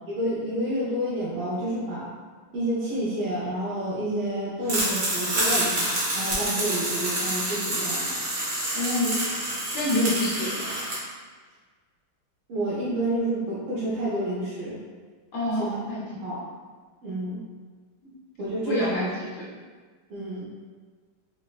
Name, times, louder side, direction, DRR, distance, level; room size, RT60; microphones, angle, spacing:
voice 1, 0.1-2.1 2.5-8.2 12.5-14.8 15.6-15.8 16.1-16.4 17.0-17.4 18.4-19.1 20.1-20.5, right 1 dB, 90° right, -9 dB, 1.6 m, -29 dB
sound 1, 4.7-11.0, right 1 dB, 55° right, 1.3 m, -27 dB
voice 2, 8.7-9.2 9.7-10.7 15.3-16.0 16.3-16.4 18.0-18.1 18.6-19.4, left 1 dB, 70° left, -7 dB, 1.5 m, -27 dB
4.1 x 2.1 x 2.3 m, 1.5 s
omnidirectional pair, 2.3 m